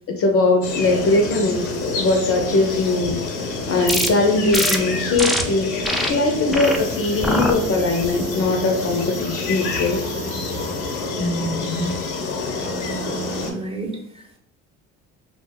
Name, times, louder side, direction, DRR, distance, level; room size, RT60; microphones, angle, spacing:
voice 1, 0.1-3.3 3.7-5.7 6.1-10.0, left 2 dB, 40° left, 3 dB, 0.6 m, -20 dB
sound 1, 0.6-13.5, left 3 dB, 75° left, 0.8 m, -28 dB
sound 2, 3.9-4.1 4.5-4.8 5.2-5.4 5.8-6.1 6.5-6.8 7.2-7.5 8.0-8.4, equal, ahead, 0.3 m, -23 dB
sound 3, 6.6-11.2 11.4-11.7, right 3 dB, 80° right, 0.9 m, -40 dB
voice 2, 11.1-12.0 13.5-14.4, equal, 15° right, 0 dB, 0.9 m, -29 dB
2.5 x 2.1 x 3.5 m, 0.68 s
hypercardioid pair, 60°, 36 cm